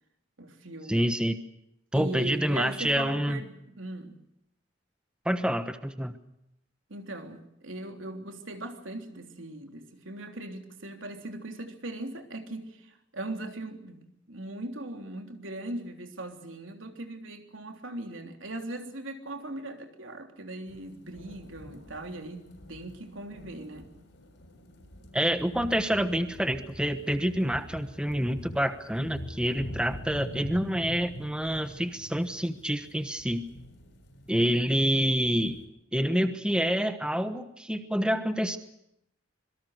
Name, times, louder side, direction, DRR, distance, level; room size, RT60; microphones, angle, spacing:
voice 1, 0.4-1.1 1.9-4.2 6.9-23.9, right 2 dB, 85° right, 3.3 m, -39 dB
voice 2, 0.9-1.4 1.9-3.4 5.2-6.1 25.1-33.5 34.3-35.6 35.9-38.6, equal, 5° right, 1.2 m, -27 dB
sound 1, 20.7-35.6, equal, 65° left, 6.7 m, -45 dB
26.0 x 23.0 x 6.5 m
head